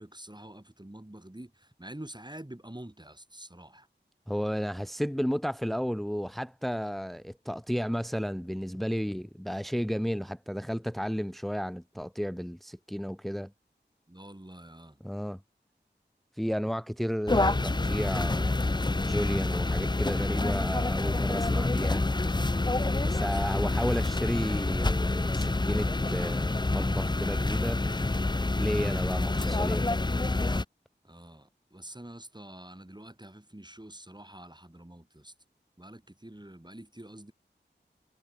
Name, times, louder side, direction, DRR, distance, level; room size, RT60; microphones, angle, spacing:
voice 1, 0.0-3.9 14.1-15.0 22.8-23.4 31.0-35.3 35.8-37.3, right 1 dB, 25° right, 7.9 m, -47 dB
voice 2, 4.3-13.5 15.0-15.4 16.3-18.6 19.0-22.0 23.0-27.8 28.6-29.9, equal, ahead, 1.3 m, -33 dB
sound 1, 17.3-30.6, left 2 dB, 25° left, 0.6 m, -27 dB
wide cardioid pair, 45°, 19 cm